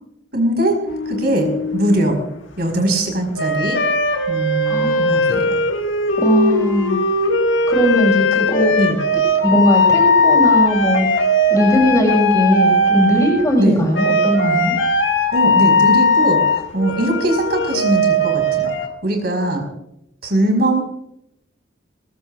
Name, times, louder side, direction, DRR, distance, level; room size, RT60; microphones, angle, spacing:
voice 1, 0.3-0.8 1.0-2.2 2.6-3.8 4.3-5.6 8.8-9.0 13.6-13.8 15.3-19.6 20.2-20.8, right 1 dB, 55° right, 4 dB, 5.0 m, -20 dB
sound 1, 0.9-2.1 3.3-13.6 13.9-18.9, left 1 dB, 90° left, 1.7 m, -18 dB
voice 2, 4.6-5.1 6.2-7.0 7.7-8.7 9.4-14.7, equal, 15° left, 0 dB, 6.4 m, -18 dB
22.5 x 21.0 x 2.5 m, 0.80 s
head